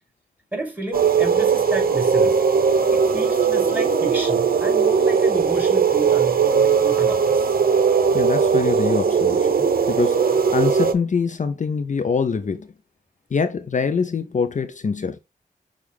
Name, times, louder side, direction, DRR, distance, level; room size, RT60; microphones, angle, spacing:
voice 1, 0.5-2.4 2.9-7.5, right 2 dB, 10° right, 2.3 m, -31 dB
sound 1, 0.9-10.9, right 6 dB, 80° right, 0.7 m, -19 dB
voice 2, 8.1-9.5 9.9-12.7 13.3-15.2, left 5 dB, 55° left, 0.5 m, -24 dB
6.3 x 2.4 x 3.4 m
wide cardioid pair, 80°, 15 cm